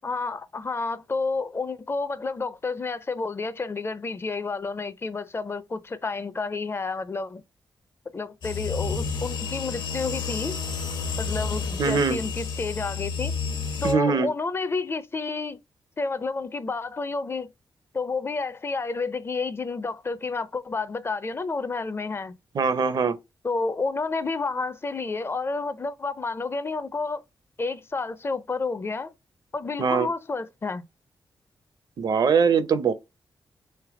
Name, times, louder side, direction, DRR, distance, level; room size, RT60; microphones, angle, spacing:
voice 1, 0.0-7.4 8.1-10.5 11.2-13.4 13.8-15.6 16.0-17.5 17.9-22.3 23.4-27.2 27.6-29.1 29.5-30.8, left 3 dB, 30° left, 0.4 m, -30 dB
sound 1, 8.4-13.9, left 5 dB, 75° left, 1.0 m, -30 dB
voice 2, 11.8-12.2 13.8-14.3 22.5-23.2 29.8-30.1 32.0-32.9, right 5 dB, 60° right, 0.6 m, -22 dB
3.4 x 3.3 x 4.7 m
wide cardioid pair, 105°, 8 cm